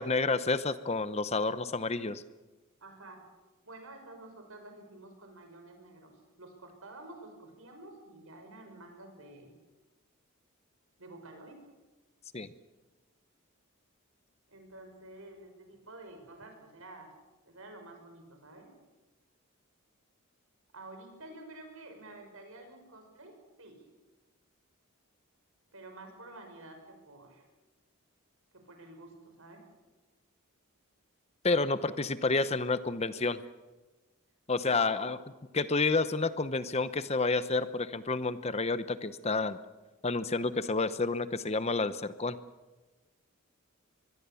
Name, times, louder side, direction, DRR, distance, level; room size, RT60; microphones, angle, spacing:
voice 1, 0.0-2.2 12.3-12.5 31.4-33.4 34.5-35.2 35.5-39.6 40.0-42.4, left 3 dB, 30° left, 13 dB, 0.8 m, -29 dB
voice 2, 2.8-3.2 3.6-6.1 6.4-9.5 11.0-11.6 14.5-17.2 17.4-18.7 20.7-23.8 25.7-27.4 28.5-29.6 31.5-31.6 34.6-35.2, right 2 dB, 70° right, 5 dB, 6.0 m, -50 dB
24.0 x 21.5 x 7.1 m, 1.2 s
head